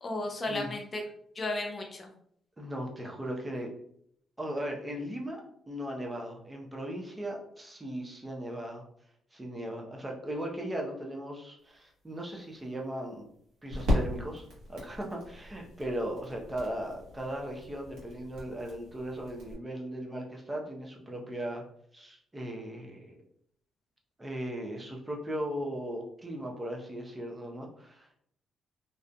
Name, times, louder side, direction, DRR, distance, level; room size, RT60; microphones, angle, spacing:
voice 1, 0.0-1.0 1.4-2.1, left 2 dB, 40° left, 3 dB, 0.6 m, -34 dB
voice 2, 2.6-3.7 4.4-8.8 9.3-13.3 13.6-21.6 21.9-23.1 24.2-28.2, right 1 dB, 20° right, 0 dB, 0.7 m, -37 dB
sound 1, 11.6-19.5, left 1 dB, 70° right, 1.1 m, -37 dB
2.6 x 2.4 x 2.2 m, 0.68 s
supercardioid pair, 55°, 0 cm